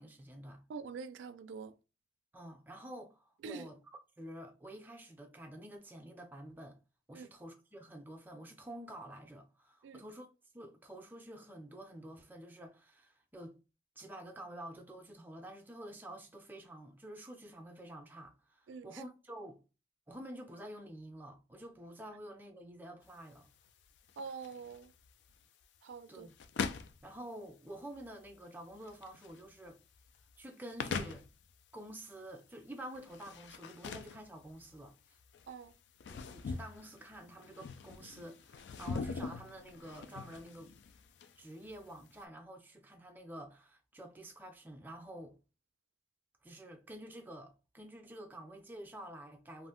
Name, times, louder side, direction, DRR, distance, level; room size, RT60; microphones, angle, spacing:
voice 1, 0.0-0.6 2.3-3.8 4.2-6.8 7.1-10.3 10.5-13.6 14.0-19.6 20.1-23.5 26.1-26.3 27.0-29.8 30.4-31.3 31.7-35.0 36.1-40.7 41.4-45.4 46.4-49.7, right 1 dB, 10° right, 0.5 m, -49 dB
voice 2, 0.7-1.8 3.4-3.7 7.1-7.3 9.8-10.0 18.7-19.0 24.2-24.9 25.8-26.3 35.5-35.7, right 5 dB, 90° right, 0.3 m, -45 dB
sound 1, 23.0-42.2, left 5 dB, 75° left, 0.3 m, -44 dB
2.5 x 2.1 x 3.6 m
head